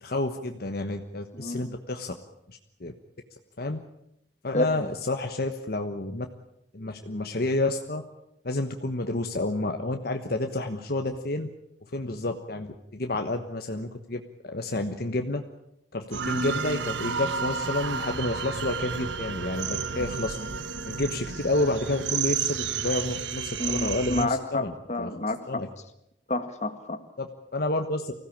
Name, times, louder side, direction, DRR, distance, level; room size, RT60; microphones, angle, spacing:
voice 1, 0.0-2.2 2.5-2.9 3.6-3.8 4.4-6.3 6.7-8.0 8.4-11.5 11.9-15.4 15.9-20.4 20.8-25.1 25.5-25.7 27.2-28.1, left 2 dB, 55° left, 5 dB, 1.3 m, -30 dB
voice 2, 1.3-1.8 4.5-4.8 23.6-25.6 26.3-27.0, left 2 dB, 40° left, 8 dB, 1.9 m, -29 dB
sound 1, 16.1-24.2, right 6 dB, 85° right, 1.3 m, -31 dB
25.0 x 16.5 x 8.8 m, 0.83 s
head